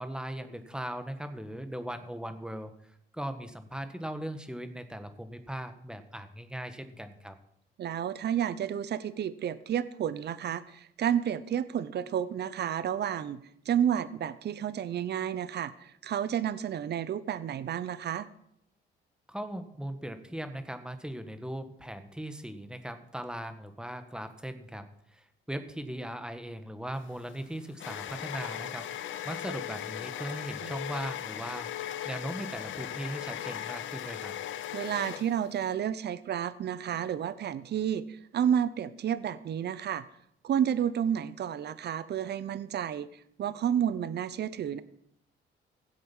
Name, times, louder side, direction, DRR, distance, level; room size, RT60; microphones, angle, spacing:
voice 1, 0.0-7.4 19.3-31.7 32.0-34.3, right 1 dB, 5° right, 8 dB, 1.5 m, -39 dB
voice 2, 7.8-13.4 13.7-18.3 30.6-30.7 34.7-40.0 40.4-43.1 43.4-44.8, right 9 dB, 55° right, 15 dB, 0.8 m, -31 dB
sound 1, 27.0-35.7, left 11 dB, 75° left, 0.9 m, -38 dB
16.0 x 7.8 x 5.5 m, 0.74 s
cardioid pair, 90°, 20 cm